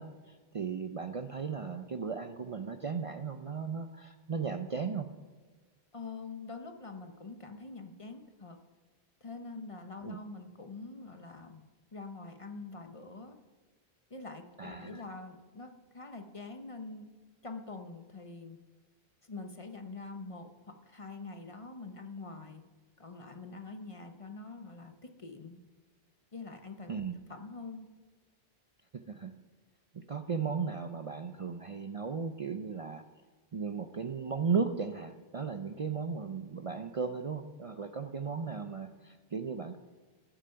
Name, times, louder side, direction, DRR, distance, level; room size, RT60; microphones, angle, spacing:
voice 1, 0.0-5.1 10.0-10.2 14.6-15.0 26.9-27.2 29.1-29.3 29.9-33.0 33.5-39.8, right 5 dB, 40° right, 7 dB, 0.5 m, -36 dB
voice 2, 5.9-8.6 9.2-11.6 11.9-13.4 14.1-17.1 17.4-18.6 19.2-22.6 23.0-25.6 26.3-27.0 27.3-27.9, left 3 dB, 35° left, 6 dB, 0.9 m, -45 dB
14.0 x 8.8 x 5.7 m, 1.3 s
omnidirectional pair, 1.0 m